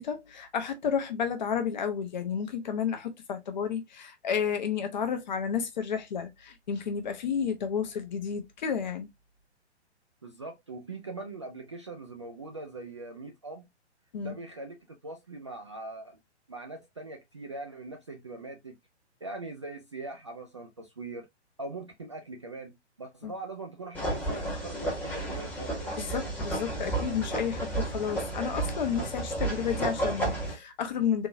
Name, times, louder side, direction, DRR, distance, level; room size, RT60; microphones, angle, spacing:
voice 1, 0.0-9.1 14.1-14.4 23.2-23.3 26.0-31.3, left 7 dB, 40° left, 0.8 m, -31 dB
voice 2, 10.2-13.6 14.2-16.2 16.5-18.8 19.2-21.3 21.6-22.7 23.0-26.0, right 2 dB, 25° right, 0.3 m, -41 dB
sound 1, 23.9-30.5, right 2 dB, 5° left, 1.0 m, -32 dB
3.8 x 2.7 x 2.5 m
figure-of-eight pair, 130°, 35 cm